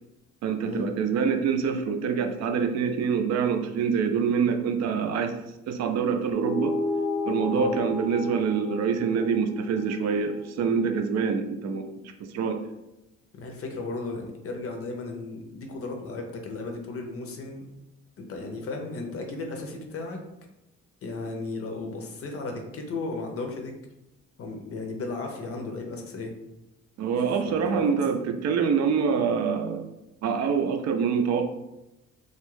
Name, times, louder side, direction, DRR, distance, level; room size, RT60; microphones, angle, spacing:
voice 1, 0.4-5.3 5.7-6.8 7.3-12.6 27.0-29.9 30.2-31.5, right 6 dB, 60° right, 6 dB, 0.4 m, -25 dB
sound 1, 6.3-11.1, left 2 dB, 5° left, 0.3 m, -33 dB
voice 2, 13.3-17.6 18.2-20.2 21.0-23.7 24.4-26.3 27.4-28.0, left 3 dB, 50° left, 3 dB, 0.6 m, -35 dB
2.3 x 2.1 x 3.1 m, 0.92 s
cardioid pair, 90°, 30 cm